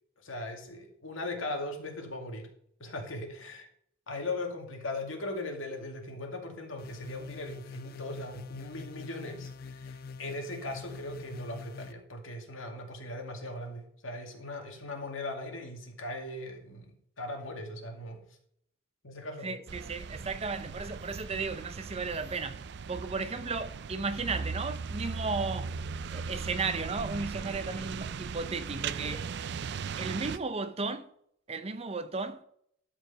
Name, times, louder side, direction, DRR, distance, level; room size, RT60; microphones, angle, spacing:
voice 1, 0.2-2.5 2.8-3.7 4.1-16.9 17.2-18.2 19.0-19.6, left 2 dB, 85° left, 2.3 m, -39 dB
sound 1, 6.8-11.9, left 4 dB, 50° left, 0.4 m, -44 dB
voice 2, 19.4-25.7 26.1-29.3 30.0-31.1 31.5-32.4, right 4 dB, 30° right, 0.7 m, -35 dB
sound 2, 19.7-30.4, right 5 dB, 60° right, 0.4 m, -38 dB
sound 3, 20.1-27.2, equal, 20° left, 1.8 m, -58 dB
12.5 x 5.0 x 5.9 m
head